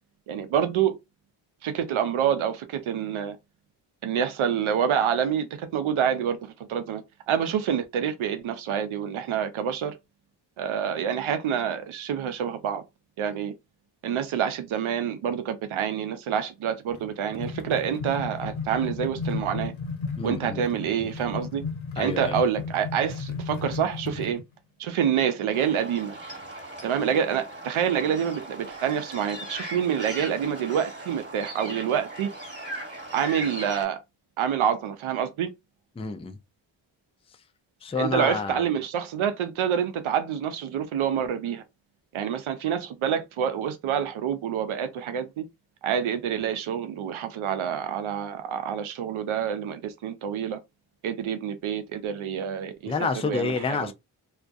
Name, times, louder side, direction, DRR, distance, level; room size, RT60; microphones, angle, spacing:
voice 1, 0.3-1.0 1.6-3.4 4.0-9.9 10.6-12.8 13.2-13.5 14.0-19.7 20.2-21.6 22.0-24.4 24.8-26.2 26.8-32.3 33.1-34.0 34.4-35.5 38.0-41.6 42.1-45.4 45.8-50.6 51.0-52.9 53.2-53.9, right 8 dB, 80° right, 0.6 m, -27 dB
sound 1, 16.9-24.4, left 4 dB, 75° left, 0.7 m, -34 dB
voice 2, 20.1-20.7 22.0-22.4 36.0-36.4 37.8-38.7 52.9-53.9, left 4 dB, 15° left, 0.4 m, -29 dB
sound 2, 25.5-33.8, right 1 dB, 25° right, 1.4 m, -39 dB
2.2 x 2.2 x 2.5 m
cardioid pair, 40°, 48 cm